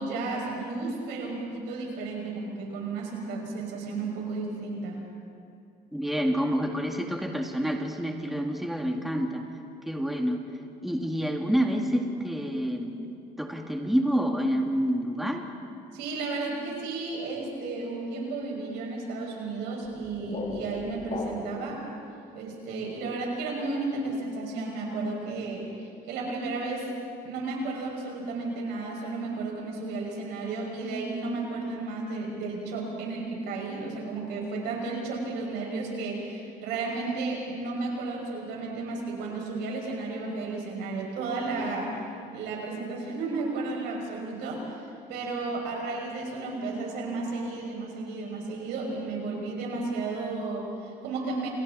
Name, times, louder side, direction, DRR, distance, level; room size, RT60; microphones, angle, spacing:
voice 1, 0.0-5.0 15.9-21.8 22.3-26.9 27.2-42.0 42.3-51.5, right 3 dB, 90° right, -1 dB, 6.5 m, -33 dB
voice 2, 5.9-9.4 9.9-10.4 10.8-15.5, equal, ahead, 1 dB, 2.2 m, -28 dB
sound 1, 19.8-21.8, left 3 dB, 50° left, 5.6 m, -37 dB
29.5 x 28.5 x 4.3 m, 2.5 s
cardioid pair, 110°, 17 cm